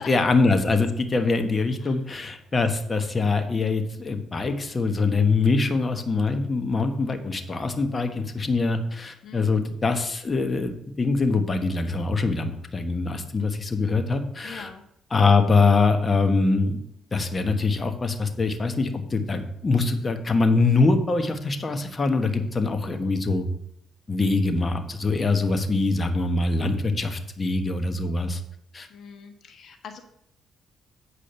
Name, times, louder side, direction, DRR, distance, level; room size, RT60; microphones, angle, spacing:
voice 1, 0.0-14.7 15.1-16.8 17.1-23.4 24.1-28.4 28.7-28.9, left 3 dB, 30° left, 7 dB, 1.3 m, -23 dB
voice 2, 9.2-9.6 14.4-14.8 28.9-30.0, left 6 dB, 60° left, 6 dB, 1.4 m, -42 dB
8.5 x 4.9 x 6.9 m, 0.73 s
cardioid pair, 90°, 0 cm